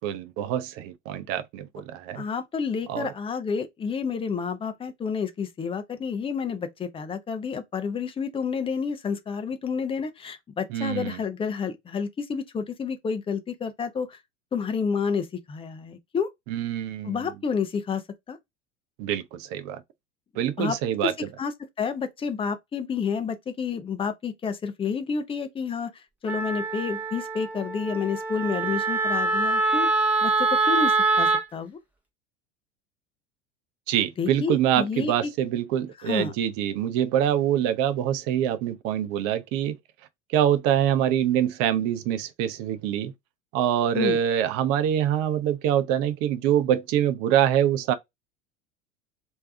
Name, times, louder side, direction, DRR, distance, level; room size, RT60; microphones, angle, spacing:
voice 1, 0.0-2.2 2.9-3.1 10.7-11.2 16.5-17.2 19.0-19.8 20.4-21.1 33.9-39.8 40.3-43.1 43.5-47.9, right 10 dB, 40° right, 0.6 m, -25 dB
voice 2, 2.1-14.2 14.5-16.3 17.0-18.0 18.3-18.4 20.6-20.8 21.0-21.5 21.8-31.8 34.2-35.3 36.0-36.3 43.9-44.2, left 6 dB, 15° left, 0.6 m, -30 dB
Wind instrument woodwind instrument, 26.3-31.4, right 3 dB, 5° right, 1.0 m, -24 dB
3.2 x 2.7 x 3.3 m
figure-of-eight pair, 80°, 37 cm